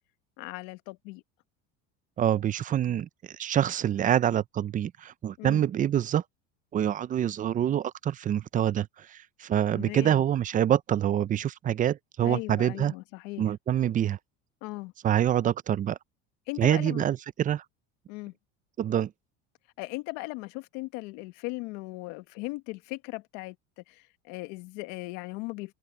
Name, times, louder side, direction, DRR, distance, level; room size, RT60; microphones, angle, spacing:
voice 1, 0.4-1.2 5.4-5.6 9.7-10.2 12.2-13.5 14.6-14.9 16.5-17.0 18.1-18.3 19.8-25.7, left 23 dB, 70° left, 1.5 m, -38 dB
voice 2, 2.2-6.2 6.7-12.9 13.4-14.2 15.0-16.0 16.6-17.6 18.8-19.1, right 10 dB, 25° right, 0.5 m, -26 dB
supercardioid pair, 135°, 33 cm